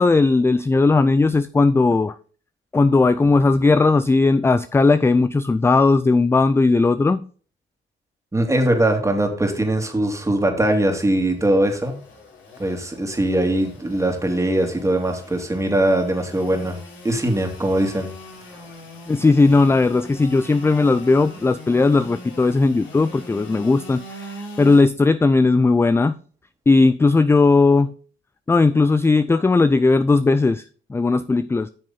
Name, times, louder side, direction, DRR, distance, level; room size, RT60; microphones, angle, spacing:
voice 1, 0.0-2.2 2.7-7.2 19.1-26.2 26.7-27.9 28.5-30.6 30.9-31.7, left 3 dB, 10° left, 0.4 m, -17 dB
voice 2, 8.3-11.9 12.6-16.8 17.0-18.1, right 1 dB, 15° right, 2.4 m, -21 dB
Engine / Sawing, 11.0-24.8, left 1 dB, 75° left, 3.5 m, -41 dB
8.7 x 6.3 x 3.8 m
cardioid pair, 90°, 20 cm